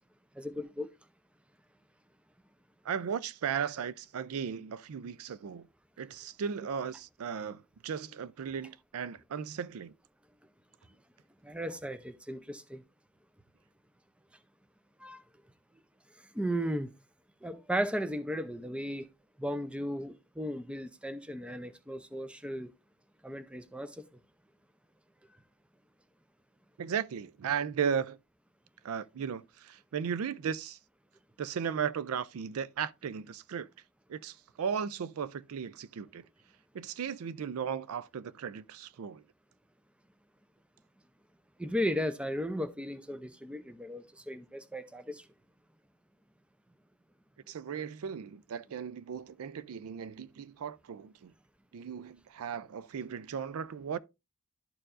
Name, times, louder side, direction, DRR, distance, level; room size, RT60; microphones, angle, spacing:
voice 1, 0.4-0.9 11.4-12.8 15.0-15.2 16.3-16.9 17.4-19.1 19.4-22.7 23.2-24.0 41.6-45.3, equal, 5° right, 0.5 m, -35 dB
voice 2, 2.8-5.7 6.0-9.9 26.8-28.2 28.8-30.8 31.4-33.7 34.1-36.2 36.7-39.2 47.5-51.3 51.7-54.0, right 7 dB, 70° right, 0.4 m, -36 dB
12.0 x 4.5 x 2.5 m
head